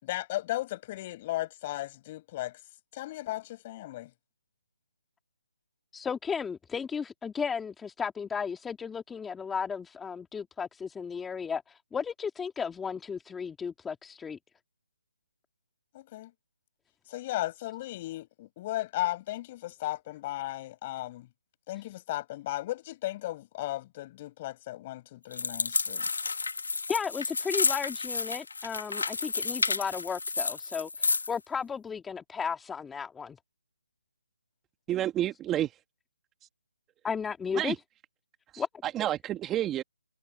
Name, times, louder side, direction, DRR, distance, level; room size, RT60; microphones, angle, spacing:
voice 1, 0.0-2.6 2.9-4.1 15.9-16.3 17.1-21.3 21.7-26.1, left 16 dB, 30° left, 5.6 m, -35 dB
voice 2, 5.9-14.4 26.9-33.4 37.0-37.7 38.6-38.7, left 6 dB, 5° left, 2.1 m, -34 dB
sound 1, 25.3-31.4, left 4 dB, 80° left, 1.6 m, -31 dB
voice 3, 34.9-35.7 37.5-37.8 38.5-39.8, right 12 dB, 15° right, 1.8 m, -30 dB
hypercardioid pair, 155°, 0 cm